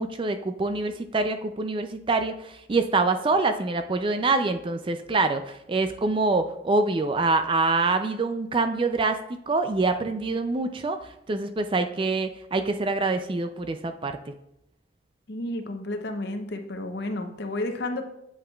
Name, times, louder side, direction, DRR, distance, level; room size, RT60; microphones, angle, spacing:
voice 1, 0.0-9.2 9.5-14.3, right 3 dB, 25° right, 8 dB, 0.3 m, -25 dB
voice 2, 15.3-18.0, left 1 dB, 55° left, 6 dB, 0.8 m, -31 dB
7.9 x 7.8 x 2.3 m, 0.82 s
head